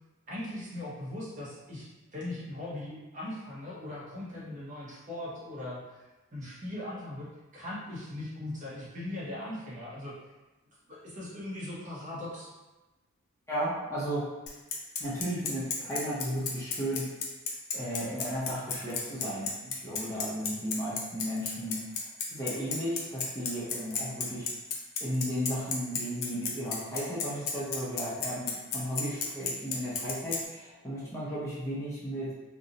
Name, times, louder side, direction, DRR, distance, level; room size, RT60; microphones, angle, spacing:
voice 1, 0.3-6.0 6.3-10.2 11.0-12.5, left 1 dB, 35° right, -7 dB, 0.6 m, -39 dB
voice 2, 13.5-14.3 15.0-17.1 17.7-21.8 22.3-24.5 25.0-32.3, equal, 15° left, -9 dB, 0.6 m, -34 dB
Bicycle, 14.5-30.4, left 5 dB, 80° left, 0.5 m, -32 dB
2.5 x 2.0 x 2.7 m, 1.1 s
head